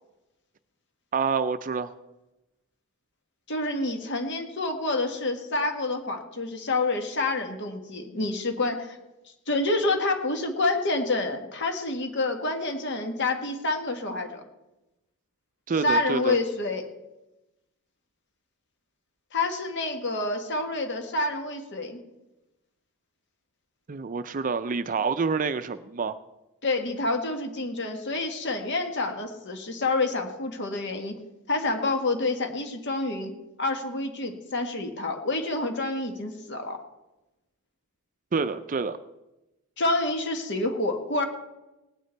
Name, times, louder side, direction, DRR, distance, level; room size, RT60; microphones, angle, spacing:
voice 1, 1.1-1.9 15.7-16.4 23.9-26.2 38.3-39.0, right 5 dB, 35° right, 11 dB, 0.5 m, -27 dB
voice 2, 3.5-9.0 9.5-14.4 15.8-16.9 19.3-22.0 26.6-31.1 31.5-33.3 33.6-36.8 39.8-41.3, left 2 dB, 55° left, 5 dB, 1.7 m, -28 dB
18.5 x 9.4 x 4.5 m, 0.99 s
head